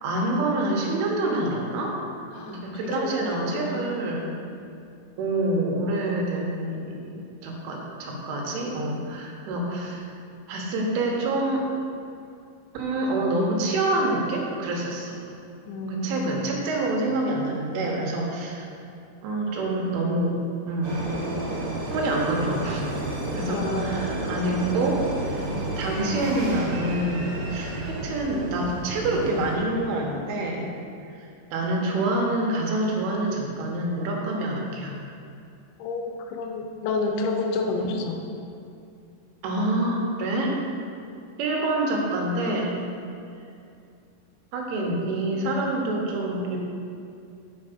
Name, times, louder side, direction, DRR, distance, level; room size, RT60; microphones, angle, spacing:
voice 1, 0.0-1.9 2.5-4.3 5.2-10.0 10.5-11.6 12.7-15.2 15.9-18.7 19.2-20.4 20.7-21.1 21.9-22.8 23.3-25.4 25.8-30.7 31.2-31.3 31.5-34.9 37.8-37.9 39.4-40.6 41.4-42.8 44.5-46.6, right 2 dB, 80° right, -1 dB, 3.8 m, -27 dB
voice 2, 2.3-4.0 15.7-16.4 23.5-24.3 35.8-38.2, left 3 dB, 80° left, 3 dB, 2.9 m, -30 dB
sound 1, 20.8-29.6, right 1 dB, 55° right, 2.9 m, -31 dB
9.7 x 6.7 x 5.3 m, 2.5 s
omnidirectional pair, 5.5 m